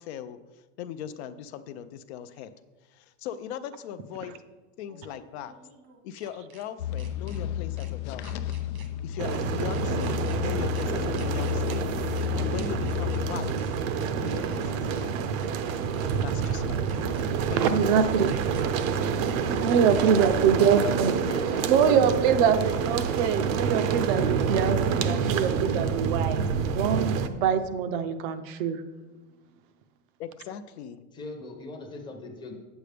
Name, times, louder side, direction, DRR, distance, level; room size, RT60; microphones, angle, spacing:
voice 1, 0.0-2.5 2.9-4.4 4.8-5.5 6.0-8.5 9.0-13.8 14.2-15.3 16.1-17.9 30.2-31.0, left 9 dB, 55° left, 11 dB, 0.5 m, -39 dB
sound 1, 2.3-2.4 4.8-6.6 7.0-7.4 7.8-7.9 8.2-8.9 9.2-9.4 9.7-10.4 10.7-10.8 11.1-11.8 12.1-12.3 12.5-13.2 13.5-13.7 14.0-14.6 14.9-15.1 15.4-16.0 16.4-16.5 16.9-17.5 17.8-18.0 18.3-18.9 19.2-19.4 19.7-20.3, right 6 dB, 85° right, 1.5 m, -51 dB
sound 2, 6.8-13.5, left 10 dB, 85° left, 0.7 m, -32 dB
sound 3, 9.2-27.3, right 6 dB, 70° right, 0.7 m, -28 dB
voice 2, 17.6-18.3 19.3-21.1 21.7-26.5 26.7-28.8, right 7 dB, 40° right, 10 dB, 0.5 m, -24 dB
voice 3, 21.3-21.6 21.9-23.4 31.1-32.5, left 3 dB, 10° left, 2 dB, 0.7 m, -40 dB
8.5 x 8.1 x 3.4 m, 1.2 s
supercardioid pair, 165°, 41 cm